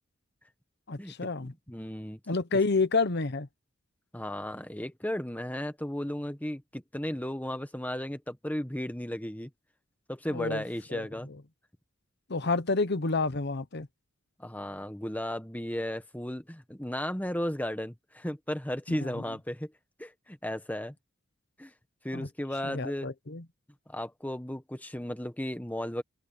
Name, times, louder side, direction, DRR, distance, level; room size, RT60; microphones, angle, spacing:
voice 1, 0.9-1.5 2.3-3.5 10.3-10.6 10.9-11.0 12.3-13.9 18.9-19.1 22.1-22.3 22.6-23.4, left 3 dB, 55° left, 1.0 m, -29 dB
voice 2, 1.4-2.2 4.1-9.5 10.1-11.3 14.4-19.7 20.0-20.9 21.6-21.7 22.0-23.1 23.9-26.0, left 1 dB, 10° left, 1.4 m, -35 dB
open air
head